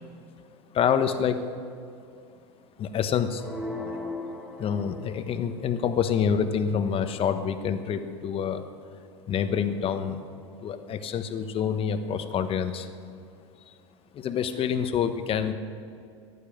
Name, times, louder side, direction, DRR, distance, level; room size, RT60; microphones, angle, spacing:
voice 1, 0.7-1.4 2.8-3.4 3.8-4.0 4.6-8.6 9.3-10.2 10.6-12.9 14.1-15.5, left 7 dB, 40° left, 9 dB, 1.2 m, -27 dB
sound 1, 3.4-5.5, left 2 dB, ahead, 3.8 m, -37 dB
15.0 x 11.5 x 7.2 m, 2.4 s
hypercardioid pair, 90°, 15 cm